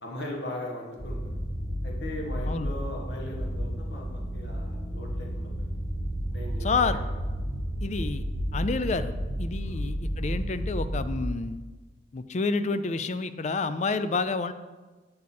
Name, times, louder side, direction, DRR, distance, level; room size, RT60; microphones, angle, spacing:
voice 1, 0.0-1.2 1.8-5.7 6.3-7.1 9.6-9.8, left 1 dB, 70° left, -1 dB, 1.5 m, -39 dB
sound 1, 1.0-11.2, equal, 15° left, 1.3 m, -32 dB
voice 2, 6.6-7.0 7.8-8.3 8.5-9.1 9.4-11.6 12.1-14.5, left 4 dB, 40° left, 12 dB, 0.4 m, -29 dB
8.3 x 6.6 x 4.3 m, 1.3 s
head